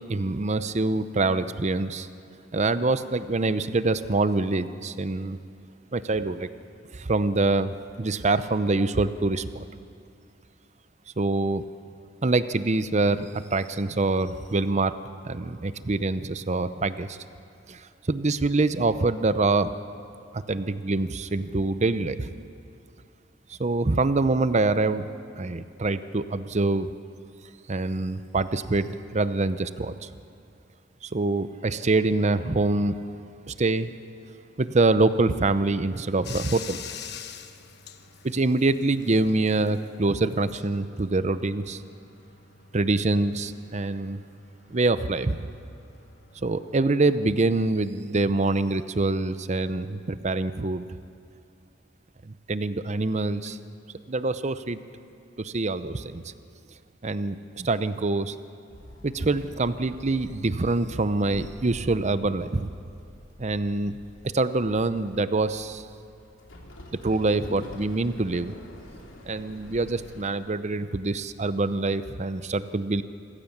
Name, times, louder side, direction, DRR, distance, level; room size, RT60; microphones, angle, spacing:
voice 1, 0.1-2.1 2.5-5.4 5.9-6.5 6.9-9.6 11.2-11.6 12.2-14.9 15.2-17.2 17.7-17.8 18.1-19.7 20.3-22.3 23.6-25.1 25.4-26.9 27.7-30.1 31.0-33.0 33.5-33.9 34.6-36.8 38.2-41.8 42.7-44.2 44.7-45.5 46.4-50.8 52.5-53.6 54.1-54.8 55.4-56.2 57.0-58.3 59.0-62.7 63.4-64.0 64.3-65.9 67.0-68.5 69.3-73.0, right 2 dB, 35° right, 13 dB, 0.7 m, -25 dB
Bathtub (filling or washing), 36.2-47.4, left 8 dB, 60° left, 1.1 m, -46 dB
Walk footsteps / Chatter / Hiss, 58.7-70.3, left 1 dB, 85° left, 3.0 m, -46 dB
26.5 x 15.0 x 7.3 m, 2.5 s
head